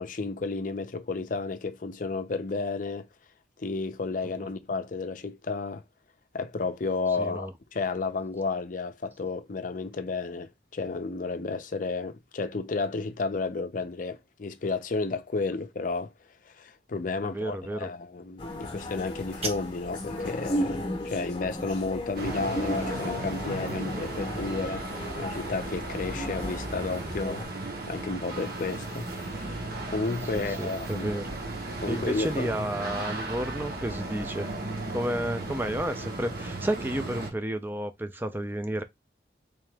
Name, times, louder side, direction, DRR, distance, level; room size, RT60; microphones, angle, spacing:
voice 1, 0.0-3.1 3.6-5.8 6.3-16.1 16.5-24.9 25.2-27.4 27.9-31.1 31.8-32.5, left 3 dB, 50° left, 0.5 m, -32 dB
voice 2, 7.2-7.5 17.2-17.9 30.3-31.3 31.9-34.5 34.9-38.8, right 1 dB, 10° right, 0.4 m, -31 dB
sound 1, 18.4-27.4, left 1 dB, 25° left, 0.9 m, -35 dB
sound 2, 19.0-20.0, right 3 dB, 35° right, 0.9 m, -38 dB
sound 3, 22.2-37.3, right 2 dB, 55° right, 1.1 m, -35 dB
3.6 x 2.9 x 3.3 m
head